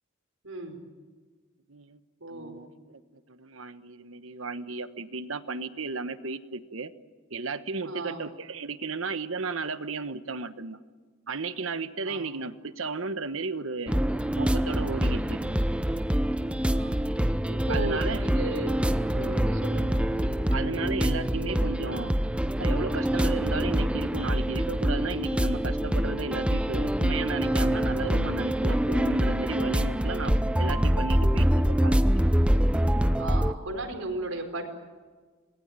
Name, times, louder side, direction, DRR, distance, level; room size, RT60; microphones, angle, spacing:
voice 1, 0.4-0.8 2.2-2.6 7.9-8.2 12.1-12.3 16.6-17.0 17.5-18.8 19.1-20.0 33.2-34.6, right 2 dB, 85° right, 3 dB, 4.7 m, -36 dB
voice 2, 1.7-2.0 2.3-6.9 7.3-10.8 11.3-14.0 14.4-15.4 17.7-18.2 20.5-22.1 22.6-30.3 30.6-32.0, right 4 dB, 70° right, 12 dB, 1.2 m, -34 dB
sound 1, 13.9-33.5, equal, 5° right, 0.7 m, -25 dB
28.0 x 19.5 x 9.0 m, 1.5 s
head